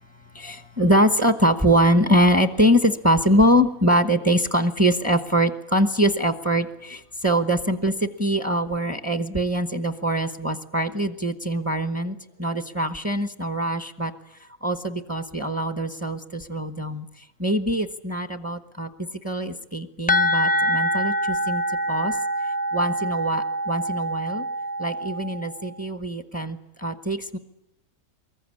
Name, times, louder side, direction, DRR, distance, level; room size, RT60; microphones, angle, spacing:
voice 1, 0.3-14.1 14.6-17.1 17.4-18.9 19.2-21.6 21.9-22.2 22.7-24.5 24.8-27.4, equal, 10° right, 8 dB, 0.9 m, -23 dB
sound 1, 20.1-25.7, equal, 10° left, 0.5 m, -25 dB
23.5 x 21.5 x 9.8 m, 0.90 s
omnidirectional pair, 1.6 m